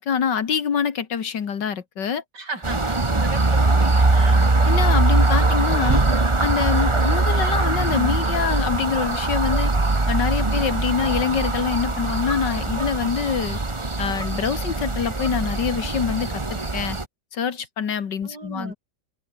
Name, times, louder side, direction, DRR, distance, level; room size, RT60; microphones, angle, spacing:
voice 1, 0.0-2.2 4.7-6.0 6.4-9.7 10.1-13.6 14.0-17.0 17.3-18.7, left 7 dB, 70° left, 2.3 m, -25 dB
voice 2, 2.3-4.5 18.2-18.7, right 2 dB, 65° right, 6.1 m, -35 dB
sound 1, 2.6-17.0, right 2 dB, 15° right, 1.5 m, -21 dB
omnidirectional pair, 1.9 m